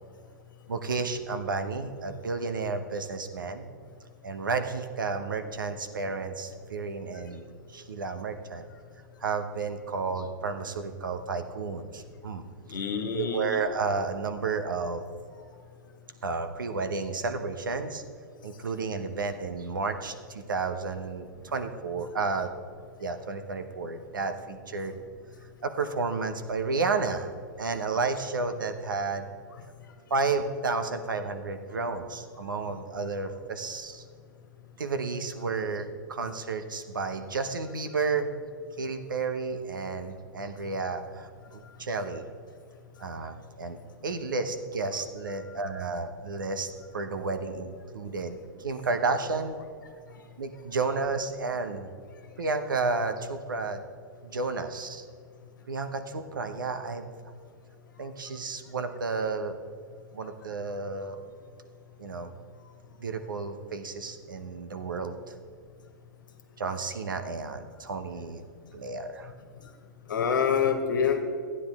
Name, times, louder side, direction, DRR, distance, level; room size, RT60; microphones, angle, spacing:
voice 1, 0.7-3.6 4.2-8.6 9.2-12.5 13.1-15.1 16.2-18.0 18.4-22.5 23.0-25.0 25.6-27.3 27.6-29.3 30.1-34.0 34.8-38.3 38.8-42.2 43.0-49.6 50.4-51.9 52.4-53.8 54.2-55.0 55.7-57.1 58.0-59.6 60.1-61.2 62.0-62.3 63.0-65.3 66.6-68.4 68.7-69.3, right 4 dB, 80° right, 8 dB, 0.9 m, -32 dB
voice 2, 12.7-13.6 70.1-71.2, left 7 dB, 75° left, 5 dB, 1.5 m, -26 dB
13.5 x 9.6 x 3.5 m, 2.1 s
hypercardioid pair, 110°, 11 cm